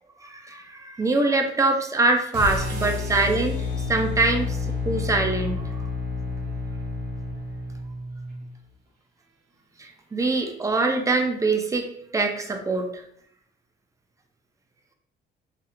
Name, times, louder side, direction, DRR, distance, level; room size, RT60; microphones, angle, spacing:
voice 1, 0.2-3.6 3.9-5.9 9.8-11.9 12.1-13.0, right 3 dB, 15° right, 3 dB, 0.3 m, -24 dB
sound 1, 2.3-8.5, left 3 dB, 70° right, 1.1 m, -30 dB
3.0 x 2.3 x 2.4 m, 0.69 s
cardioid pair, 140°, 19 cm